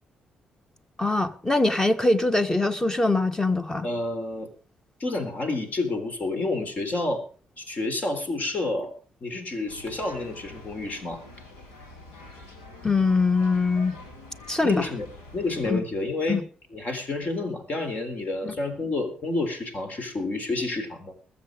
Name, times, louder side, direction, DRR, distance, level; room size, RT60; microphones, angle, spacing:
voice 1, 1.0-3.9 12.8-14.0 14.5-14.9 15.6-15.8 16.3-16.4 18.4-18.5, left 3 dB, 15° left, 1.5 m, -23 dB
voice 2, 3.8-4.5 5.0-7.2 7.6-8.9 9.2-11.2 14.6-15.1 15.3-16.4 16.7-21.1, left 2 dB, 50° left, 3.8 m, -29 dB
sound 1, 9.7-15.7, left 2 dB, 90° left, 3.0 m, -46 dB
21.0 x 7.5 x 5.2 m
hypercardioid pair, 50°, 4 cm